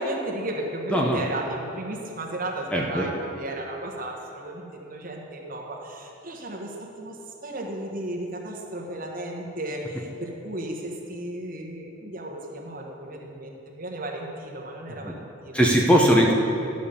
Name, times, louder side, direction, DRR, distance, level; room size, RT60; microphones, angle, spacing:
voice 1, 0.0-15.6, right 1 dB, 40° right, 0 dB, 1.3 m, -34 dB
voice 2, 2.7-3.1 15.0-15.2 15.5-16.3, equal, 5° left, -1 dB, 0.7 m, -20 dB
12.0 x 5.3 x 6.9 m, 2.9 s
head